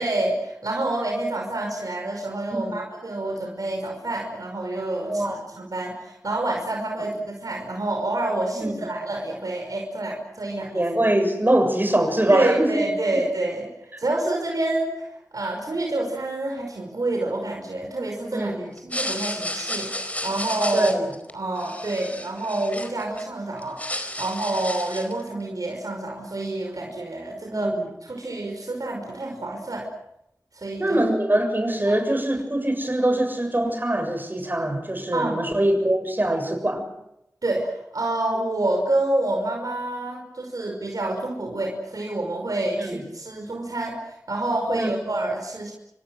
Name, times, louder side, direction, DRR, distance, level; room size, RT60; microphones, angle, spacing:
voice 1, 0.0-10.8 12.3-13.7 14.0-15.1 15.3-18.6 18.8-20.9 21.3-23.8 24.2-29.9 30.5-31.0 31.9-32.0 35.1-35.4 37.4-45.7, right 2 dB, 85° right, 1 dB, 5.6 m, -28 dB
voice 2, 5.1-5.4 8.5-8.9 10.7-12.8 18.3-18.7 20.7-21.1 27.5-27.8 30.8-36.9 42.8-43.0 44.7-44.9, right 1 dB, 35° right, 6 dB, 7.2 m, -23 dB
sound 1, 18.8-23.2 23.6-25.2, left 1 dB, 25° left, 4.6 m, -32 dB
28.5 x 25.5 x 6.5 m, 0.82 s
wide cardioid pair, 60°, 6 cm